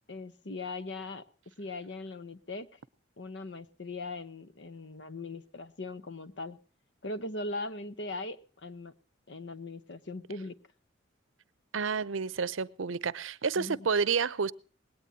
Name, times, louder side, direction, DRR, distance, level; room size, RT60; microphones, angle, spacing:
voice 1, 0.1-1.2 1.6-2.8 3.2-6.6 7.0-8.9 9.3-10.6 13.6-13.9, left 2 dB, 60° left, 1.0 m, -40 dB
voice 2, 11.7-14.5, right 5 dB, 85° right, 0.7 m, -30 dB
19.5 x 18.0 x 2.8 m
head